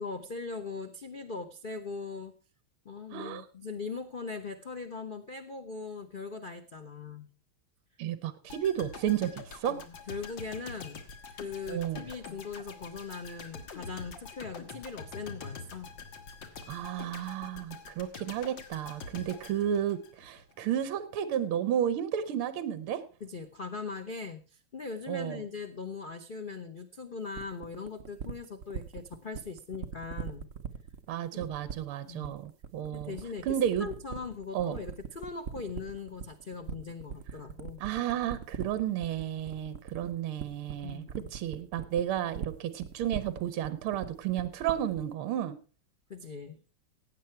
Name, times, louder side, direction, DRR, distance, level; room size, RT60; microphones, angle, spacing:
voice 1, 0.0-2.3 2.8-7.3 9.7-11.0 11.3-15.9 23.2-30.5 31.3-31.4 32.1-32.4 32.9-33.5 33.8-37.8 40.8-41.3 46.1-46.6, left 4 dB, 85° left, 8 dB, 0.4 m, -40 dB
voice 2, 3.1-3.4 8.0-9.8 11.7-12.0 16.7-23.0 25.1-25.4 31.1-33.2 33.5-33.9 34.5-34.8 37.8-41.0 41.3-45.6, right 10 dB, 75° right, 13 dB, 1.8 m, -32 dB
sound 1, 8.5-20.5 20.8-21.0, left 4 dB, 60° left, 2.2 m, -45 dB
sound 2, 27.3-45.1, right 7 dB, 55° right, 0.9 m, -40 dB
16.5 x 8.7 x 4.5 m, 0.35 s
omnidirectional pair, 2.4 m